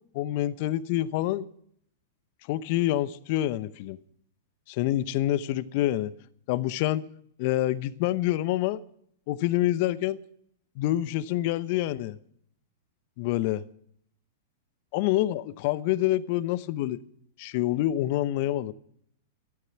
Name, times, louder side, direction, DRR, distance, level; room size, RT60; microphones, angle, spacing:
voice 1, 0.1-1.5 2.5-4.0 4.7-6.1 6.5-7.0 7.4-8.8 9.3-10.2 10.8-12.2 13.2-13.6 14.9-17.0 17.4-18.7, left 14 dB, 50° left, 0.9 m, -27 dB
15.0 x 13.5 x 5.8 m
hypercardioid pair, 105°, 0 cm